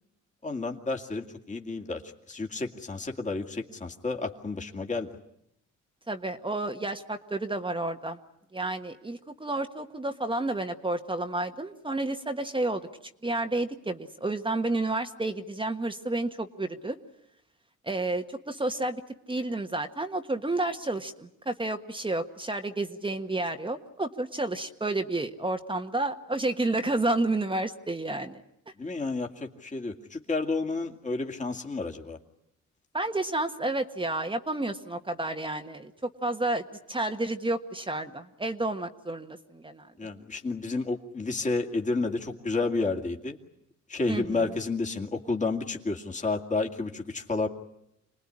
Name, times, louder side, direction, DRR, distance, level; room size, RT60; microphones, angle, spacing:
voice 1, 0.4-2.0 2.3-5.1 28.8-32.2 40.0-43.4 43.9-47.5, left 3 dB, 25° left, 3 dB, 2.4 m, -31 dB
voice 2, 6.1-8.2 8.5-12.8 13.2-17.0 17.8-19.0 19.3-28.4 32.9-35.9 36.2-36.6 36.9-39.8 44.1-44.5, right 2 dB, 15° right, 6 dB, 1.4 m, -30 dB
27.5 x 20.0 x 9.9 m, 0.81 s
cardioid pair, 90°, 30 cm